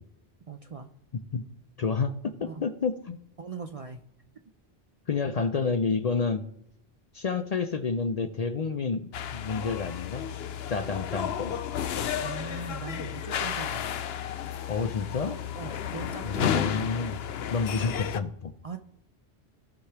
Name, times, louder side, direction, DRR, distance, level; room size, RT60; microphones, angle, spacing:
voice 1, 0.5-0.9 2.4-2.6 3.4-4.0 12.2-13.9 15.5-16.7 18.6-18.8, right 4 dB, 45° right, 6 dB, 0.5 m, -39 dB
voice 2, 1.8-3.2 5.1-6.4 7.1-10.2 10.7-11.5 14.7-15.4 16.2-17.2 17.5-18.5, left 5 dB, 50° left, 9 dB, 0.5 m, -29 dB
sound 1, 9.1-18.2, left 9 dB, 75° left, 0.9 m, -32 dB
16.0 x 5.8 x 3.3 m, 0.76 s
omnidirectional pair, 1.1 m